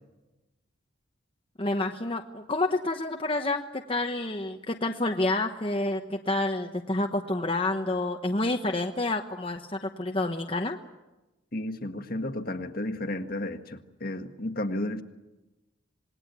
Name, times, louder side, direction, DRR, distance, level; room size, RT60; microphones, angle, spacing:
voice 1, 1.6-10.8, left 2 dB, 25° left, 3 dB, 1.1 m, -29 dB
voice 2, 11.5-15.0, left 1 dB, 45° left, 7 dB, 1.7 m, -33 dB
27.5 x 21.0 x 8.3 m, 1.0 s
head